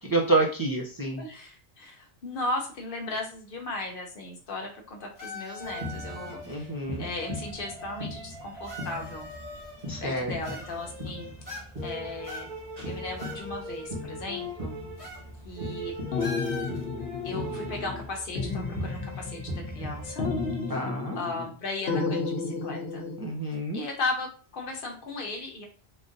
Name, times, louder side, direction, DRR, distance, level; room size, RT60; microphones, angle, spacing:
voice 1, 0.0-1.2 6.5-7.1 9.9-10.3 20.7-21.2 23.2-23.8, right 2 dB, 25° right, -3 dB, 0.5 m, -28 dB
voice 2, 1.2-6.7 7.0-9.3 10.0-11.3 11.8-12.5 12.9-14.8 15.4-15.9 17.2-19.4 19.7-20.2 20.7-20.8 21.2-23.0 23.7-25.7, left 2 dB, 60° left, 2 dB, 0.8 m, -36 dB
sound 1, 5.2-6.5 7.5-7.6 8.6-9.9 10.4-11.1 11.5-11.9 12.2-13.4 13.7-13.8 15.0-15.3 15.5-15.7 16.2-16.8, left 1 dB, 20° left, 0.9 m, -41 dB
sound 2, 5.6-20.7, equal, 50° right, 1.5 m, -38 dB
sound 3, 16.1-18.1 18.4-19.8 20.2-21.6 21.9-23.2, left 4 dB, 85° left, 0.9 m, -32 dB
3.7 x 2.6 x 2.5 m, 0.39 s
omnidirectional pair, 1.1 m